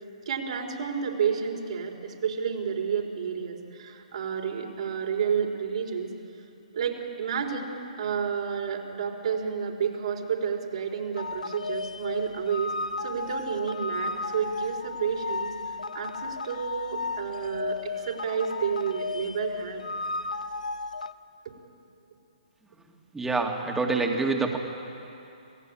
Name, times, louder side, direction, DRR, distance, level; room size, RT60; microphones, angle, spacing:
voice 1, 0.3-6.1 6.7-12.7 13.0-15.5 15.9-19.8, right 7 dB, 60° right, 0 dB, 4.4 m, -30 dB
sound 1, 11.1-21.1, left 3 dB, 90° left, 0.9 m, -34 dB
voice 2, 23.1-24.6, right 3 dB, 5° right, 2 dB, 2.4 m, -26 dB
27.0 x 18.0 x 8.9 m, 2.7 s
hypercardioid pair, 135°, 4 cm